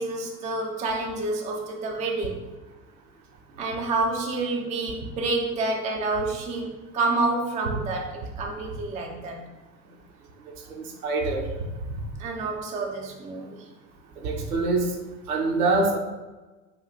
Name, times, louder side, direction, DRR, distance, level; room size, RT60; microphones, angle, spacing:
voice 1, 0.0-2.5 3.6-9.5 12.2-13.7, right 3 dB, 15° right, 1 dB, 0.5 m, -28 dB
voice 2, 11.0-11.4 14.2-14.9 15.3-16.0, right 3 dB, 65° right, 1 dB, 1.0 m, -24 dB
5.2 x 2.5 x 4.1 m, 1.2 s
figure-of-eight pair, 75°, 48 cm